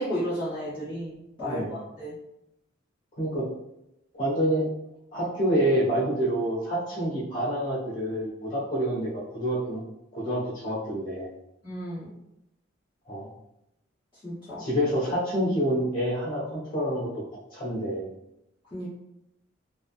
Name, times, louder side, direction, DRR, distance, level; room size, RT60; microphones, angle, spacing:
voice 1, 0.0-2.1 11.6-12.1 14.2-14.6 18.7-18.9, equal, 25° left, -14 dB, 1.2 m, -33 dB
voice 2, 1.4-1.8 3.2-3.5 4.1-4.7 5.1-9.8 10.1-11.3 13.1-13.3 14.6-17.1 17.5-18.0, right 1 dB, 45° left, -9 dB, 1.2 m, -27 dB
3.6 x 2.0 x 2.4 m, 0.86 s
head